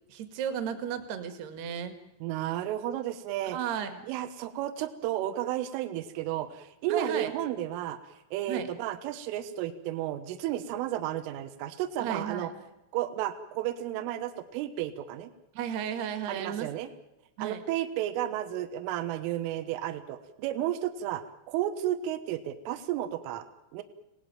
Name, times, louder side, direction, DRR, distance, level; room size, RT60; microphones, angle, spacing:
voice 1, 0.1-1.9 3.5-4.1 6.9-7.3 8.5-8.7 12.0-12.5 15.6-16.7 17.4-17.6, right 8 dB, 60° right, 8 dB, 3.6 m, -34 dB
voice 2, 2.2-3.6 4.0-12.5 12.9-15.3 16.3-16.9 17.4-23.5 23.7-23.8, right 12 dB, 80° right, 10 dB, 3.6 m, -33 dB
26.5 x 18.5 x 9.0 m, 0.97 s
omnidirectional pair, 6.0 m